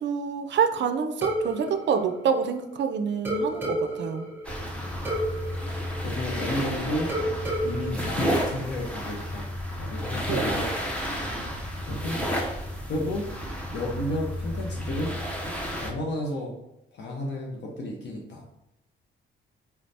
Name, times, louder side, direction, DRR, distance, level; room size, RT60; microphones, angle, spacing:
voice 1, 0.0-4.3 10.3-10.6, right 6 dB, 60° right, 7 dB, 0.4 m, -27 dB
sound 1, 1.2-2.8 3.3-6.6 7.1-9.1, right 1 dB, 10° right, 1.2 m, -32 dB
sound 2, 4.4-15.9, equal, 5° left, 0.7 m, -31 dB
voice 2, 6.0-7.1 7.6-9.5 9.8-10.7 11.9-12.2 12.8-13.3 13.7-15.2 15.4-15.5 15.8-16.6 16.9-18.4, left 1 dB, 60° left, -1 dB, 0.8 m, -32 dB
4.6 x 3.2 x 2.7 m, 0.85 s
cardioid pair, 115°, 21 cm